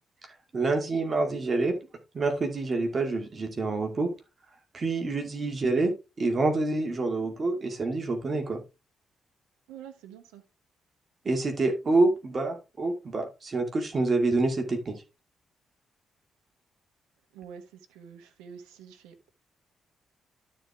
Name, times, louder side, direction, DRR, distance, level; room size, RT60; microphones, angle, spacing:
voice 1, 0.5-1.7 2.1-4.1 4.7-5.9 6.2-8.6 11.3-15.0, right 3 dB, 45° right, 2.2 m, -27 dB
voice 2, 9.7-10.4 17.3-19.3, right 8 dB, 85° right, 1.2 m, -47 dB
12.0 x 4.5 x 3.5 m
hypercardioid pair, 45°, 0 cm